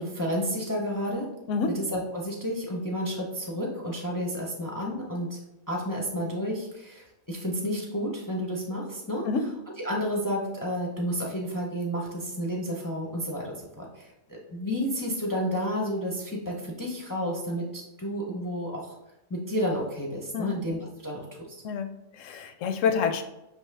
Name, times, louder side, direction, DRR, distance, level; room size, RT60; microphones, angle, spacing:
voice 1, 0.0-1.3 1.7-5.4 5.7-9.3 9.8-18.9 19.3-21.2, equal, 25° left, -2 dB, 0.4 m, -31 dB
voice 2, 21.6-23.2, left 5 dB, 80° left, 8 dB, 0.9 m, -28 dB
5.3 x 2.9 x 3.3 m, 0.92 s
omnidirectional pair, 1.3 m